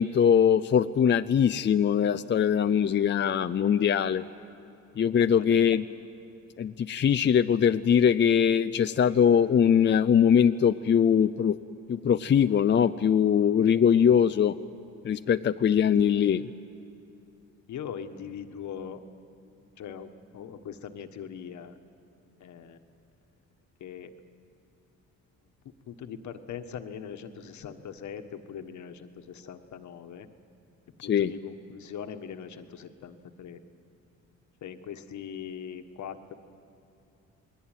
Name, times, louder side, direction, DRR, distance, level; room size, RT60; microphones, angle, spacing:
voice 1, 0.0-4.2 5.0-5.8 6.6-11.6 11.9-14.6 15.0-16.4 31.0-31.3, left 8 dB, 40° left, 10 dB, 0.6 m, -22 dB
voice 2, 5.3-5.7 17.7-19.0 19.4-21.7 22.4-22.8 23.8-24.1 25.9-30.3 31.0-33.6 34.6-36.3, left 8 dB, 70° left, 8 dB, 1.5 m, -41 dB
28.0 x 20.5 x 9.1 m, 2.7 s
cardioid pair, 90°, 30 cm